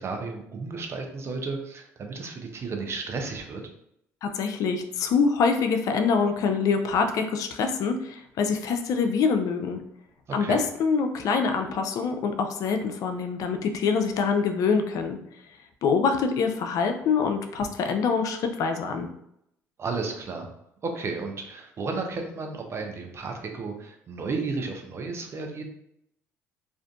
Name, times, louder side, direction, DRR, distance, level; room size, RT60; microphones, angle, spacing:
voice 1, 0.0-3.6 10.4-10.6 19.8-20.5 20.8-25.6, right 4 dB, 40° right, 3 dB, 0.6 m, -33 dB
voice 2, 4.2-9.8 10.3-15.2 15.8-19.1, left 5 dB, 60° left, 6 dB, 0.4 m, -25 dB
2.5 x 2.5 x 2.3 m, 0.76 s
supercardioid pair, 70°, 7 cm